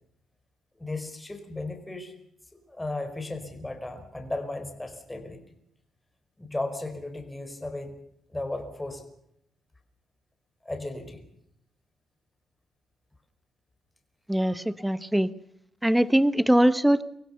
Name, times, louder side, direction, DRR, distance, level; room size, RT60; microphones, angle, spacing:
voice 1, 0.8-2.1 2.7-5.4 6.4-8.0 8.3-9.0 10.6-11.2, left 2 dB, 10° left, 6 dB, 4.8 m, -35 dB
voice 2, 14.3-15.3 15.8-17.0, right 1 dB, 5° right, 15 dB, 1.1 m, -22 dB
24.5 x 16.0 x 7.1 m, 0.74 s
cardioid pair, 90°, 0 cm